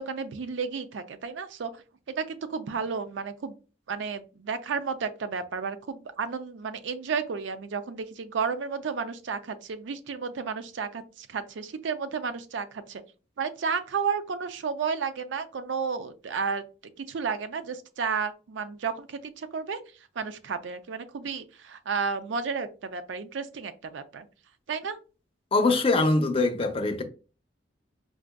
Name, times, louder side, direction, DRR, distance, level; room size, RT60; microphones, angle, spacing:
voice 1, 0.0-1.7 2.2-3.5 3.9-13.0 13.4-19.8 20.2-24.3 24.7-25.0, right 5 dB, 85° right, 0.4 m, -32 dB
voice 2, 25.5-27.0, left 3 dB, 30° left, 0.5 m, -23 dB
4.6 x 2.5 x 2.2 m
head